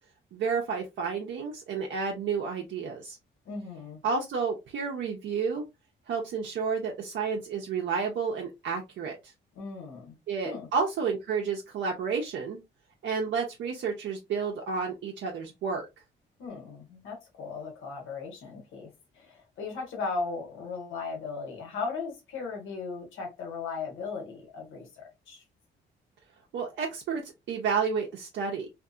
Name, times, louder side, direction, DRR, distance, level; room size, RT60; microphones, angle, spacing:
voice 1, 0.3-3.2 4.0-5.6 6.1-9.3 10.3-12.6 13.0-15.8 26.5-27.2 27.5-28.7, right 5 dB, 70° right, 0.6 m, -31 dB
voice 2, 3.4-4.0 9.6-10.2 10.4-10.7 16.4-18.9 19.2-25.4, left 4 dB, 80° left, 1.2 m, -37 dB
2.6 x 2.5 x 2.3 m
cardioid pair, 90°, 20 cm